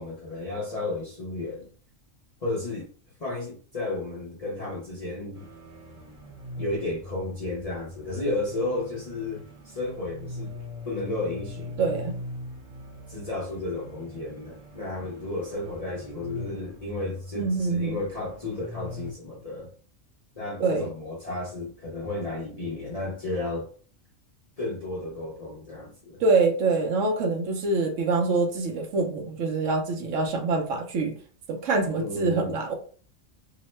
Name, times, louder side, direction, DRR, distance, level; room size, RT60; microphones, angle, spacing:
voice 1, 0.0-1.7 2.4-2.9 3.2-5.5 6.6-10.5 10.8-12.0 13.1-19.7 20.3-23.7 24.6-26.2 32.0-32.6, left 2 dB, 40° left, 0.6 m, -33 dB
sound 1, 5.3-19.1, left 2 dB, 30° right, 0.8 m, -41 dB
voice 2, 11.8-12.1 17.4-18.0 20.6-20.9 26.2-31.1 31.5-32.7, right 3 dB, 70° right, 1.0 m, -25 dB
2.8 x 2.0 x 3.1 m
omnidirectional pair, 1.4 m